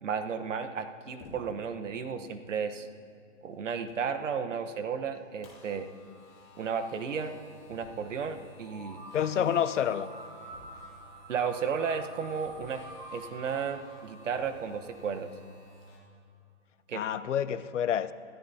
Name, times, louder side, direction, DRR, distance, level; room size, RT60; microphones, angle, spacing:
voice 1, 0.0-2.9 3.4-5.9 6.6-7.3 7.7-9.0 9.4-9.5 11.3-12.8 13.1-15.3 16.9-17.0, right 6 dB, 70° right, 8 dB, 1.2 m, -33 dB
sound 1, 1.2-1.8 2.6-2.7 3.5-3.6 3.9-4.2 5.4-5.5 5.7-5.8 6.0-6.1 7.7-8.2 10.5-11.2 12.4-13.1 14.3-14.7, left 2 dB, 25° left, 2.3 m, -53 dB
sound 2, 5.1-16.0, left 1 dB, 10° left, 1.0 m, -55 dB
sound 3, 8.6-15.4, right 1 dB, 35° right, 3.6 m, -47 dB
voice 2, 9.1-10.1 16.9-18.1, left 9 dB, 65° left, 15 dB, 0.7 m, -28 dB
26.5 x 14.0 x 2.8 m, 2.4 s
hypercardioid pair, 170°, 39 cm